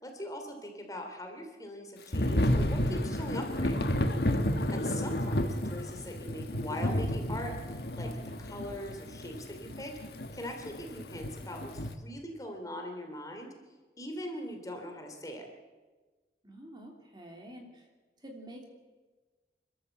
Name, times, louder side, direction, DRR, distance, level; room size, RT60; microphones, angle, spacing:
voice 1, 0.0-3.8 4.7-8.1 8.4-9.9 10.3-13.5 14.0-15.5, left 1 dB, 20° left, 3 dB, 2.9 m, -41 dB
Thunder / Rain, 2.1-11.9, left 1 dB, 65° left, 1.7 m, -31 dB
voice 2, 4.4-4.8 16.4-17.9 18.2-18.7, right 1 dB, 25° right, 2 dB, 3.0 m, -48 dB
27.5 x 13.0 x 7.9 m, 1.3 s
head